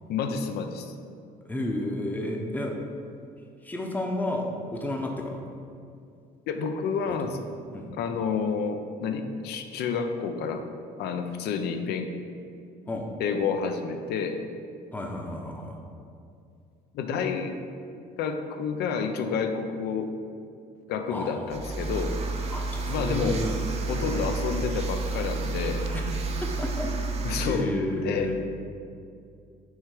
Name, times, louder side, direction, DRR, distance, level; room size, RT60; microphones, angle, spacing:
voice 1, 0.1-0.9 6.5-7.4 8.0-10.6 11.0-12.1 13.2-14.4 16.9-17.5 18.2-20.1 20.9-22.2 22.9-23.4 23.9-25.8 27.2-27.7 28.0-28.4, left 6 dB, 75° left, 7 dB, 0.6 m, -29 dB
voice 2, 1.4-2.7 3.6-5.4 7.1-7.3 7.7-7.9 12.9-13.1 14.9-15.8 21.1-21.7 22.5-23.6 23.9-24.2 25.9-26.0 26.6-26.9 27.5-28.4, left 1 dB, 10° left, 1 dB, 0.7 m, -32 dB
sound 1, 21.5-27.6, right 3 dB, 40° right, 0.7 m, -30 dB
6.4 x 3.4 x 4.8 m, 2.4 s
cardioid pair, 110°, 17 cm